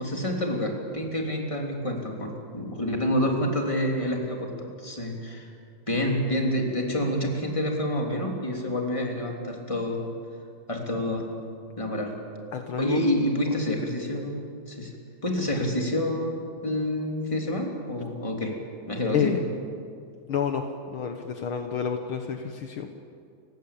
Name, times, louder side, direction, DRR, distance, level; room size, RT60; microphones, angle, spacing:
voice 1, 0.0-5.5 5.9-10.0 10.7-11.3 11.8-12.2 12.8-14.9 15.2-18.6 18.9-19.4, equal, 10° left, 1 dB, 2.9 m, -28 dB
voice 2, 12.5-13.0 19.0-19.4 20.3-22.9, left 7 dB, 75° left, 5 dB, 1.2 m, -29 dB
29.5 x 17.0 x 8.6 m, 2.4 s
omnidirectional pair, 4.1 m